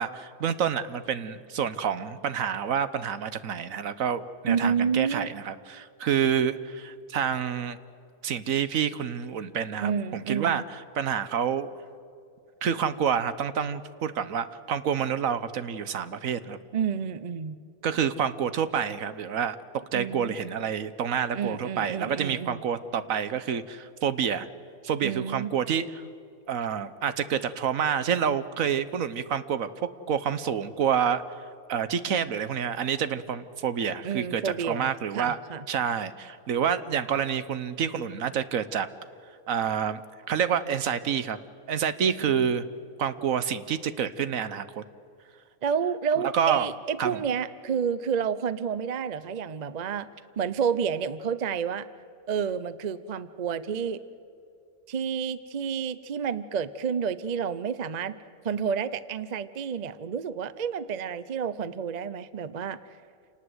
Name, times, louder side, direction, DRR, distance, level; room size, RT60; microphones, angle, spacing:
voice 1, 0.0-7.8 8.2-11.7 12.6-16.6 17.8-19.6 19.9-24.5 24.8-26.0 26.5-31.2 31.7-35.4 35.7-38.9 39.5-40.0 40.3-41.4 41.7-42.7 43.0-44.8 46.3-46.7 47.0-47.2, right 8 dB, 70° right, 13 dB, 1.3 m, -28 dB
voice 2, 4.5-5.3 9.8-10.6 16.7-17.6 19.9-20.3 21.3-22.6 25.0-25.5 34.0-35.6 42.0-42.5 45.6-50.1 50.4-51.9 52.3-54.0 54.9-58.1 58.4-62.8, right 7 dB, 40° right, 15 dB, 0.6 m, -30 dB
28.0 x 19.0 x 8.0 m, 2.4 s
omnidirectional pair, 1.5 m